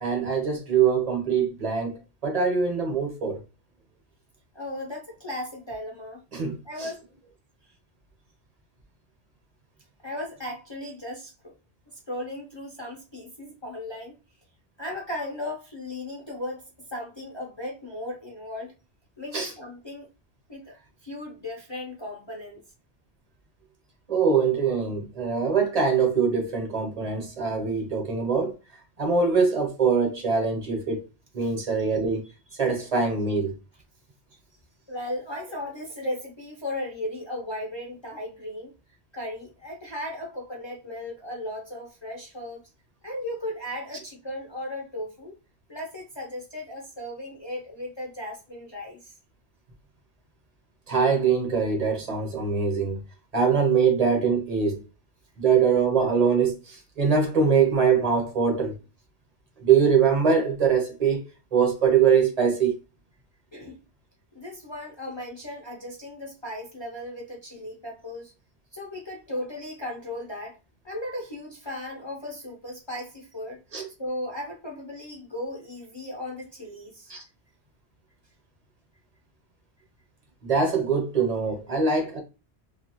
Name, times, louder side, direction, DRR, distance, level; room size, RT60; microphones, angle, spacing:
voice 1, 0.0-3.4 6.3-6.9 19.3-19.5 24.1-28.5 29.0-31.0 31.3-32.3 32.6-33.5 50.9-53.0 53.3-54.8 55.4-58.7 59.6-61.2 61.5-62.7 73.7-73.9 77.1-77.2 80.4-82.2, right 6 dB, 40° right, 0.8 m, -23 dB
voice 2, 4.5-6.2 6.6-7.0 10.0-11.5 12.1-14.1 14.8-18.7 19.2-20.1 20.5-20.7 21.0-22.6 31.4-31.5 34.9-38.7 39.1-42.7 43.0-45.4 45.7-49.1 63.5-63.8 64.3-68.3 68.7-70.6 70.8-73.6 74.0-77.1, left 1 dB, 30° left, 0.6 m, -36 dB
2.7 x 2.4 x 2.9 m
omnidirectional pair, 1.1 m